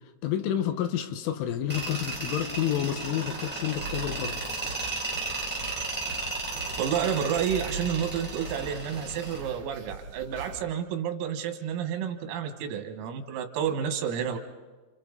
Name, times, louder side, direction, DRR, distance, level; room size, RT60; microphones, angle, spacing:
voice 1, 0.2-4.4, left 10 dB, 75° left, 7 dB, 3.8 m, -29 dB
Tools, 1.7-9.4, right 2 dB, 5° right, 2.8 m, -34 dB
sound 1, 3.8-10.6, right 3 dB, 45° right, 2.2 m, -42 dB
voice 2, 6.8-14.4, right 8 dB, 85° right, 6 dB, 4.4 m, -30 dB
30.0 x 27.5 x 4.1 m, 1.3 s
omnidirectional pair, 5.9 m